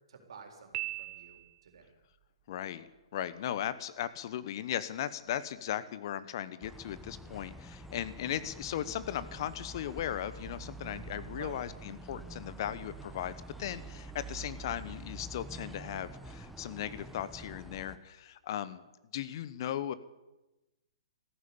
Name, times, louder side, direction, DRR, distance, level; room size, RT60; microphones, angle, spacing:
voice 1, 0.1-1.9 8.2-8.4 11.3-11.6, right 6 dB, 70° right, 4 dB, 4.0 m, -51 dB
Piano, 0.7-1.9, right 20 dB, 30° right, 0.8 m, -39 dB
voice 2, 2.5-18.8 19.1-19.9, left 11 dB, 50° left, 15 dB, 1.0 m, -37 dB
sound 1, 6.6-18.0, right 2 dB, 5° right, 1.0 m, -47 dB
14.0 x 11.5 x 8.6 m, 1.0 s
hypercardioid pair, 130°, 3 cm